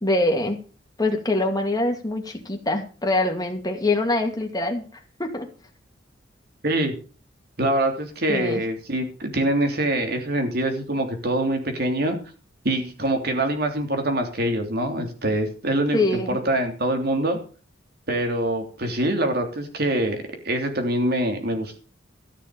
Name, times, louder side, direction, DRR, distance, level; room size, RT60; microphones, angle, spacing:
voice 1, 0.0-0.6 1.0-4.8 5.2-5.5 8.3-8.6 15.9-16.3, left 2 dB, 20° left, 3 dB, 2.4 m, -24 dB
voice 2, 6.6-6.9 7.6-12.2 12.6-17.4 18.1-21.8, right 1 dB, 55° right, 4 dB, 3.2 m, -24 dB
14.0 x 6.7 x 7.0 m, 0.38 s
head